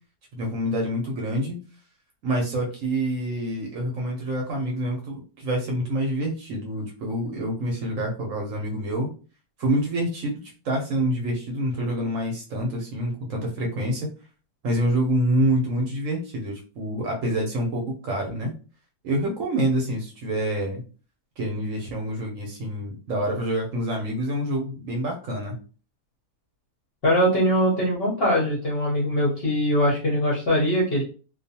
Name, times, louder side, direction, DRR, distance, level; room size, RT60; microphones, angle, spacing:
voice 1, 0.3-1.6 2.2-9.1 9.6-14.1 14.6-18.5 19.0-20.8 21.4-25.6, right 1 dB, 65° right, 0 dB, 0.9 m, -27 dB
voice 2, 27.0-31.0, equal, 50° left, -5 dB, 0.8 m, -22 dB
2.4 x 2.3 x 2.7 m, 0.36 s
omnidirectional pair, 1.7 m